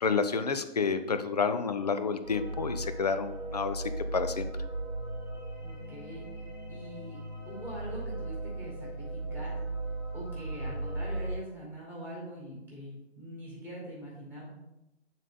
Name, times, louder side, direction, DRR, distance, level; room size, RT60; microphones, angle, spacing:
voice 1, 0.0-3.8 4.1-4.5, left 5 dB, 35° left, 10 dB, 0.5 m, -29 dB
sound 1, 2.2-11.4, right 2 dB, 20° right, 1.3 m, -37 dB
voice 2, 5.6-6.4 6.7-7.2 7.5-9.6 10.1-14.5, right 1 dB, 5° left, -5 dB, 1.9 m, -43 dB
8.9 x 3.7 x 3.7 m, 0.90 s
figure-of-eight pair, 145°, 34 cm